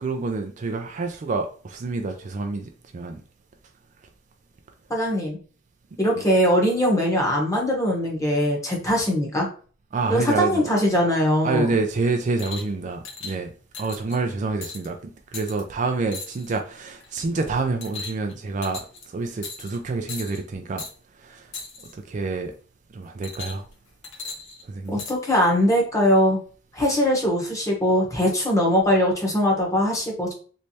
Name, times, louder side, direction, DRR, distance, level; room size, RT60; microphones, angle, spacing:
voice 1, 0.0-3.2 9.9-10.7 11.4-13.5 13.8-20.8 21.2-21.5 21.9-22.5 22.9-23.6 24.6-25.0, right 3 dB, 40° right, 0.4 m, -28 dB
voice 2, 4.9-5.4 6.0-9.5 10.1-11.7 24.9-26.4 26.7-30.3, equal, 15° left, 1.0 m, -21 dB
sound 1, 12.4-12.7 13.0-13.3 13.7-14.2 14.6-14.9 15.3-15.6 16.1-16.6 17.0-17.3 17.8-18.3 18.6-19.0 19.4-19.8 20.1-20.4 20.8-20.9 21.5-21.9 23.2-23.7 24.0-25.1 26.0-26.1, left 4 dB, 70° left, 0.9 m, -37 dB
3.2 x 3.1 x 2.7 m
head